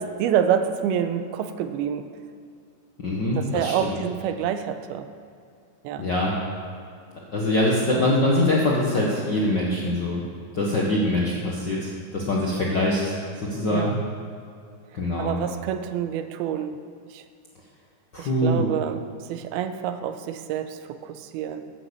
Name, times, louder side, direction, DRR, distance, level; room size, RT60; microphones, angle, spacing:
voice 1, 0.0-2.1 3.4-5.1 5.8-6.1 7.9-8.1 13.7-14.0 15.2-16.8 17.1-17.2 18.2-19.0 19.3-21.7, right 9 dB, 85° right, 9 dB, 2.5 m, -27 dB
voice 2, 3.0-4.0 6.0-6.4 7.3-10.2 10.5-14.0 14.9-15.4 18.1-18.7, left 1 dB, 75° left, -4 dB, 1.0 m, -23 dB
14.5 x 8.9 x 7.1 m, 2.3 s
omnidirectional pair, 4.5 m